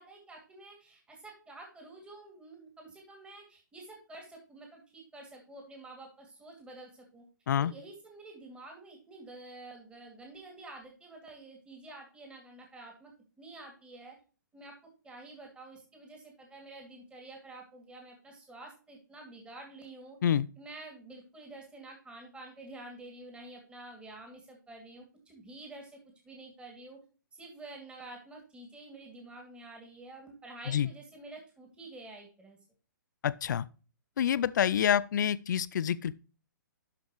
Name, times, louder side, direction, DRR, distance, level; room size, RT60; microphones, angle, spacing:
voice 1, 0.0-7.2 7.6-13.1 13.4-14.2 14.5-14.8 15.0-20.2 20.6-26.0 26.2-27.0 27.3-32.6, right 2 dB, 10° right, 2.3 m, -49 dB
voice 2, 33.2-33.6 34.2-36.1, left 9 dB, 60° left, 0.4 m, -27 dB
12.5 x 5.1 x 3.0 m
figure-of-eight pair, 130°, 11 cm